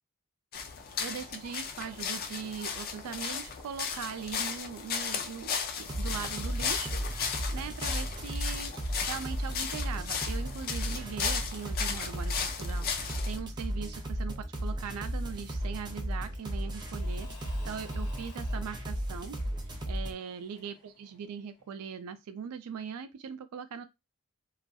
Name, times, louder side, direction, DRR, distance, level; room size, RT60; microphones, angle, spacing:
sound 1, 0.5-13.4, left 6 dB, 40° left, 0.4 m, -35 dB
voice 1, 1.0-6.9 7.2-19.4 19.9-23.8, right 7 dB, 80° right, 0.4 m, -41 dB
sound 2, 5.8-20.1, equal, 20° right, 0.4 m, -35 dB
Engine / Mechanisms / Drill, 15.3-22.0, left 3 dB, 70° left, 0.9 m, -56 dB
2.6 x 2.4 x 2.3 m
head